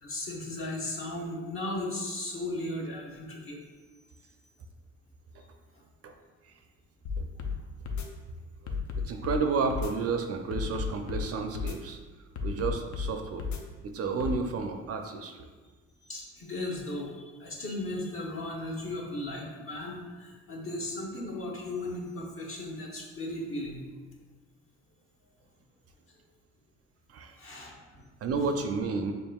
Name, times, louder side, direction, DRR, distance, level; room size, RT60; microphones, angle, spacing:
voice 1, 0.0-3.6 16.0-23.8 27.4-28.1 28.4-28.5, left 1 dB, 45° left, -2 dB, 0.9 m, -36 dB
sound 1, 7.1-7.6 7.9-8.1 8.7-9.4 9.7-9.9 10.5-11.2 11.6-11.8 12.4-13.1 13.4-13.6 14.2-14.4, left 5 dB, 70° left, 0.5 m, -32 dB
voice 2, 9.0-12.0 12.4-13.4 13.8-15.3 27.1-27.4 28.2-29.1, right 4 dB, 55° right, 5 dB, 0.4 m, -31 dB
5.3 x 2.5 x 2.3 m, 1.4 s
cardioid pair, 90°, 30 cm